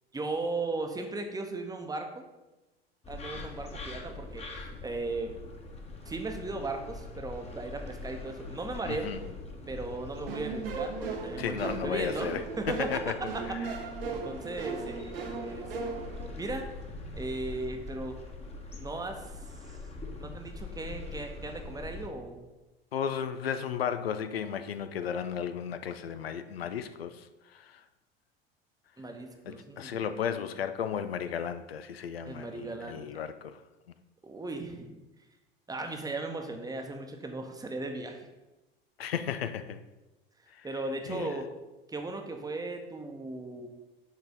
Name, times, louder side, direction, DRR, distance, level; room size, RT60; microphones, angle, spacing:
voice 1, 0.1-2.2 3.1-5.3 6.0-9.1 9.7-12.3 12.6-13.8 14.1-15.7 16.4-16.7 17.2-18.2 18.8-19.4 20.2-22.4 29.0-30.0 32.2-33.1 34.2-35.0 35.7-38.3 40.6-41.5 41.9-43.7, right 2 dB, 10° right, 1.0 m, -37 dB
sound 1, 3.0-22.1, left 3 dB, 20° left, 1.2 m, -43 dB
voice 2, 8.9-9.2 11.4-12.4 12.9-13.1 13.5-13.6 22.9-27.8 29.5-33.6 39.0-39.8 40.5-40.7 41.1-41.3, left 8 dB, 75° left, 0.5 m, -34 dB
sound 2, 10.3-16.3, right 4 dB, 70° right, 1.0 m, -37 dB
6.5 x 4.5 x 5.2 m
figure-of-eight pair, 70°, 30 cm